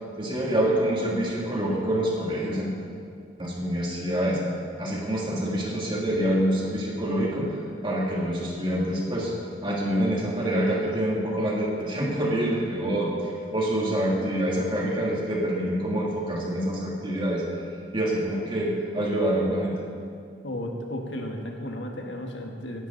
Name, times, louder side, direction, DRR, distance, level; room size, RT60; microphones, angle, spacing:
voice 1, 0.2-2.7 3.4-4.4 4.8-7.6 7.8-9.3 9.6-17.4 17.9-19.8, right 1 dB, 30° right, -4 dB, 2.7 m, -26 dB
voice 2, 20.4-22.9, left 1 dB, 80° left, 2 dB, 1.6 m, -34 dB
17.5 x 11.0 x 4.0 m, 2.2 s
head